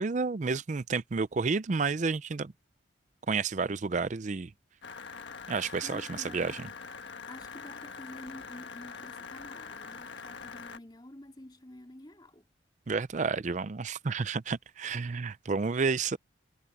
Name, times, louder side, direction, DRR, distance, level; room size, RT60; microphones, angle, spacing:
voice 1, 0.0-2.5 3.3-4.5 5.5-6.6 12.9-16.2, right 4 dB, 40° right, 0.5 m, -30 dB
sound 1, 4.8-10.8, left 5 dB, 75° left, 1.4 m, -44 dB
voice 2, 5.8-6.6 7.3-12.5, left 1 dB, 25° left, 3.0 m, -49 dB
head